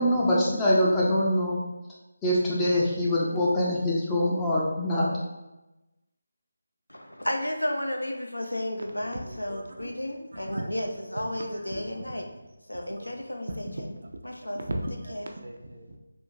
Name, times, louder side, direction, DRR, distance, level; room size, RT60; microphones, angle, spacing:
voice 1, 0.0-1.6 2.2-5.1, left 1 dB, 10° left, -6 dB, 0.4 m, -24 dB
voice 2, 6.9-12.3 12.7-13.9 14.2-14.6 15.1-15.3, left 1 dB, 85° left, 3 dB, 0.5 m, -33 dB
voice 3, 9.2-9.9 10.3-10.7 11.1-11.2 11.7-12.0 13.8-13.9 14.7-15.2 15.4-16.0, right 1 dB, 55° right, 2 dB, 0.3 m, -36 dB
3.5 x 2.5 x 2.6 m, 1.0 s
figure-of-eight pair, 160°, 0 cm